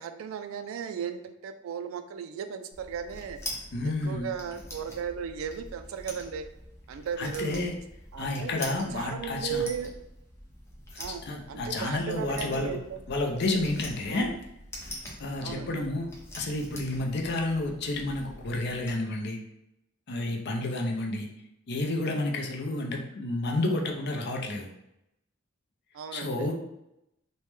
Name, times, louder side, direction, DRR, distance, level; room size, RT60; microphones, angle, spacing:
voice 1, 0.0-3.4 3.8-6.5 6.9-7.7 8.1-8.6 8.9-9.9 11.0-11.2 11.5-13.1 14.1-14.4 15.4-15.8 25.9-26.5, right 7 dB, 85° right, 9 dB, 0.3 m, -36 dB
sound 1, 2.7-18.9, left 1 dB, 15° left, 0.6 m, -44 dB
voice 2, 3.7-4.3 7.2-7.7 8.2-9.6 11.3-12.8 13.1-14.3 15.2-16.1 16.4-19.4 20.1-21.3 21.7-24.7 26.1-26.5, left 2 dB, 55° left, 1 dB, 0.5 m, -30 dB
3.1 x 2.1 x 3.2 m, 0.86 s
head